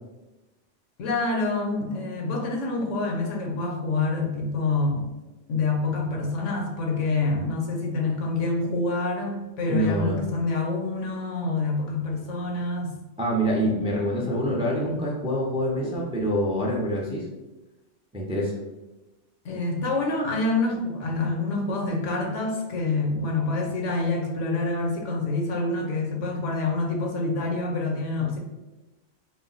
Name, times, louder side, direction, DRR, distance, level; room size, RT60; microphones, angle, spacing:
voice 1, 1.0-5.1 5.5-12.9 19.4-28.4, left 3 dB, 85° left, 1 dB, 1.1 m, -27 dB
voice 2, 9.7-10.2 13.2-17.3 18.1-18.5, equal, 10° right, -3 dB, 0.3 m, -26 dB
4.1 x 2.1 x 3.9 m, 1.1 s
omnidirectional pair, 1.2 m